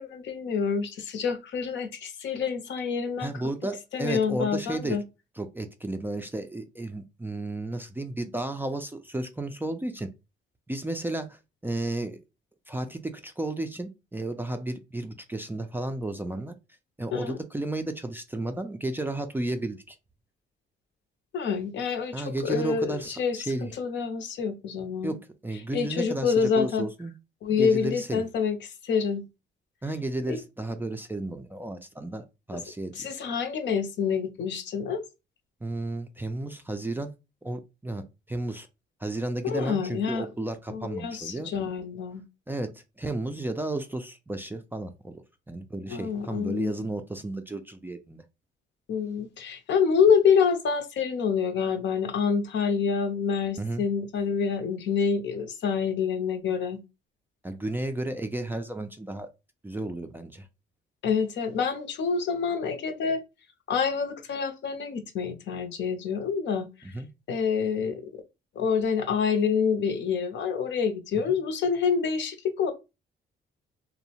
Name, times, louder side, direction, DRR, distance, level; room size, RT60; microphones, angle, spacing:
voice 1, 0.0-3.3 3.9-5.0 17.1-17.4 21.3-25.2 25.7-26.9 27.4-29.2 30.3-30.4 32.5-32.6 32.9-35.0 39.4-40.3 40.7-42.2 45.9-46.7 48.9-56.8 61.0-63.2 63.7-66.9 67.3-68.0 68.6-72.7, left 6 dB, 65° left, 0.6 m, -27 dB
voice 2, 3.2-5.0 5.4-10.1 10.7-12.2 12.7-16.5 17.0-20.0 22.1-23.7 25.0-25.2 25.4-27.1 27.5-28.2 29.8-33.1 35.6-37.1 37.4-38.7 39.0-41.5 42.5-48.2 53.6-53.8 57.4-59.3 59.6-60.5 66.8-67.1 71.3-71.4, right 2 dB, 10° right, 0.3 m, -33 dB
2.6 x 2.0 x 2.8 m
cardioid pair, 90°, 20 cm